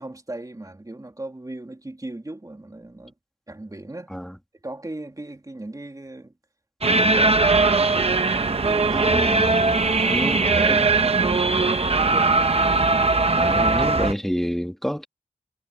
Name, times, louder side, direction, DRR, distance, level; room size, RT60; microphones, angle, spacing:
voice 1, 0.0-3.1 3.5-4.1 4.6-6.3 6.9-9.4 9.9-12.5, right 2 dB, 25° right, 2.6 m, -37 dB
sound 1, 6.8-14.1, right 3 dB, 45° right, 1.0 m, -20 dB
voice 2, 8.9-9.5 10.1-10.8 13.4-15.1, equal, ahead, 2.6 m, -28 dB
wide cardioid pair, 65°, 14 cm